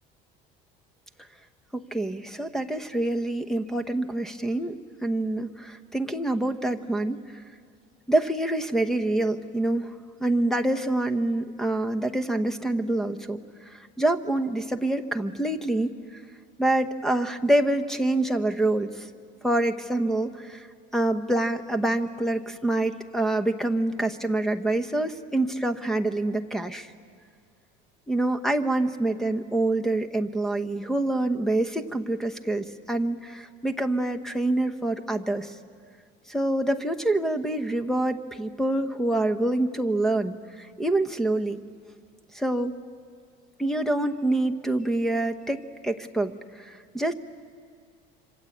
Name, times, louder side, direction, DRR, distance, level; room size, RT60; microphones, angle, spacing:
voice 1, 1.7-4.8 5.0-7.2 8.1-9.9 10.2-13.4 13.7-16.2 16.6-19.1 19.4-20.7 20.9-26.9 28.1-35.5 36.3-41.6 42.3-42.7 43.6-47.1, right 2 dB, ahead, 10 dB, 0.9 m, -26 dB
26.0 x 26.0 x 8.5 m, 2.1 s
cardioid pair, 165°, 21 cm